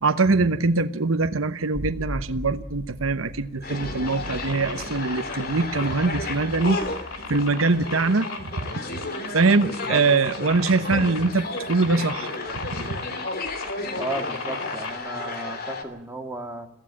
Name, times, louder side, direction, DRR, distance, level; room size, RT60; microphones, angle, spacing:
voice 1, 0.0-6.8 7.3-8.7 9.3-12.3 12.7-13.0, right 3 dB, 80° right, 11 dB, 1.0 m, -23 dB
sound 1, 1.7-8.5 10.5-10.6 13.4-13.7, left 1 dB, 20° left, 1.0 m, -39 dB
sound 2, 3.6-15.8, left 2 dB, 50° left, 3.0 m, -33 dB
sound 3, 4.1-14.9, left 4 dB, 90° left, 3.0 m, -37 dB
voice 2, 13.9-16.7, right 1 dB, 10° right, 3 dB, 2.2 m, -33 dB
22.5 x 15.5 x 8.6 m, 0.76 s
head